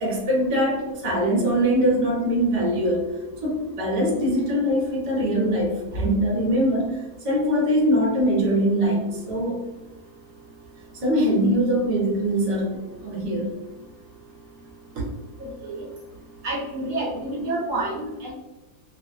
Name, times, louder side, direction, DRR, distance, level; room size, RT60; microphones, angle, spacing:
voice 1, 0.0-3.0 3.4-9.6 11.0-13.5, equal, 30° right, -3 dB, 0.6 m, -22 dB
voice 2, 15.4-15.8 16.4-18.3, right 2 dB, 65° right, -3 dB, 0.9 m, -29 dB
2.6 x 2.4 x 2.5 m, 1.1 s
omnidirectional pair, 1.7 m